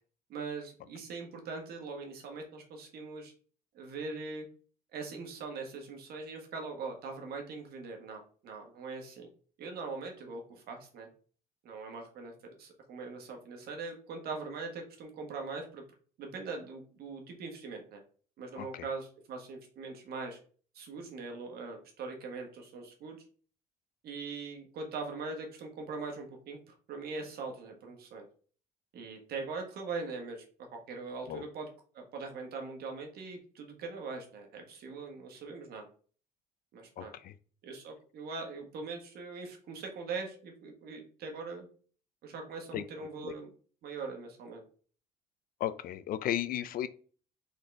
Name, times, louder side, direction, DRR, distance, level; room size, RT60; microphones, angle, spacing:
voice 1, 0.3-3.3 3.7-4.4 4.9-9.3 9.6-11.1 11.6-15.8 16.2-18.0 18.4-20.4 20.7-23.2 24.0-28.3 28.9-30.4 30.7-31.7 31.9-35.9 36.7-37.1 37.6-41.7 42.2-43.5 43.8-44.6, right 4 dB, 70° right, 2 dB, 1.5 m, -41 dB
voice 2, 37.0-37.3 42.7-42.8 43.2-43.3 45.6-46.9, left 11 dB, 60° left, 13 dB, 0.5 m, -35 dB
4.0 x 3.8 x 3.4 m, 0.41 s
cardioid pair, 110°, 17 cm